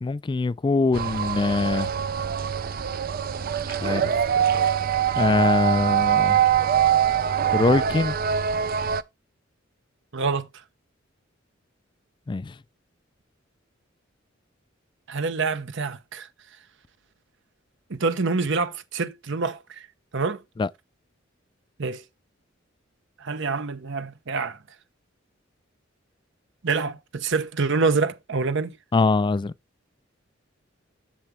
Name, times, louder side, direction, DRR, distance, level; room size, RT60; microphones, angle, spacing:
voice 1, 0.0-1.9 3.8-4.1 4.5-4.7 5.2-6.4 7.5-8.2 12.3-12.5 20.6-20.7 28.9-29.5, left 3 dB, 25° left, 0.3 m, -23 dB
sound 1, 0.9-9.0, right 9 dB, 50° right, 0.5 m, -23 dB
voice 2, 10.1-10.5 15.1-16.3 17.9-19.9 20.1-20.4 21.8-22.0 23.2-24.6 26.6-28.8, right 4 dB, 65° right, 0.9 m, -26 dB
7.3 x 7.1 x 3.2 m
head